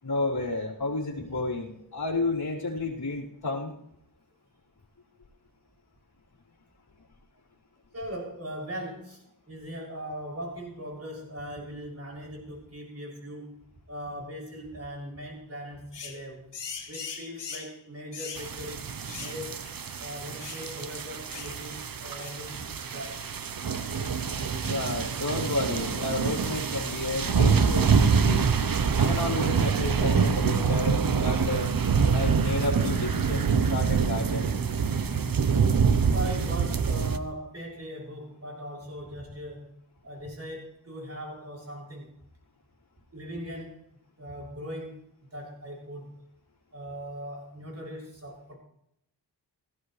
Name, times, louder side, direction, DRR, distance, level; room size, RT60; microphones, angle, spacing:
voice 1, 0.0-3.7 24.6-28.5 29.0-31.7 32.1-34.5 35.4-35.5, left 2 dB, 60° left, -5 dB, 3.8 m, -31 dB
voice 2, 7.9-13.6 13.9-16.5 16.9-19.6 20.0-23.2 36.1-39.7 40.0-42.1 43.1-43.8 44.2-45.0 45.3-46.2 46.7-48.5, equal, 35° right, -2 dB, 6.9 m, -40 dB
sound 1, 15.9-16.2 16.5-17.7 18.1-18.5 19.1-19.4 19.6-19.8 20.4-20.7 21.3-21.6 22.2-22.4, left 6 dB, 80° left, 2.0 m, -40 dB
sound 2, 18.4-37.2, right 6 dB, 55° right, 0.9 m, -26 dB
18.0 x 15.5 x 3.3 m, 0.75 s
wide cardioid pair, 115°, 42 cm